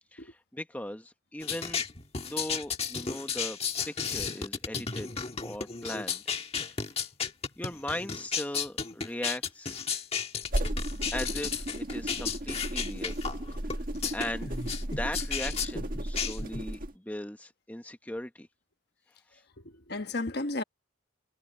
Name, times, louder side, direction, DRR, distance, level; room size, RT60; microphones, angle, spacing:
voice 1, 0.1-1.8 2.3-3.6 3.8-6.2 7.6-9.8 11.1-13.1 13.7-13.8 14.1-18.5 19.3-19.4, left 1 dB, 10° left, 0.8 m, -38 dB
sound 1, 1.4-16.7, left 6 dB, 30° left, 1.5 m, -34 dB
sound 2, 10.4-16.9, right 1 dB, 45° right, 1.8 m, -34 dB
voice 2, 19.6-20.6, left 2 dB, 55° left, 1.2 m, -34 dB
head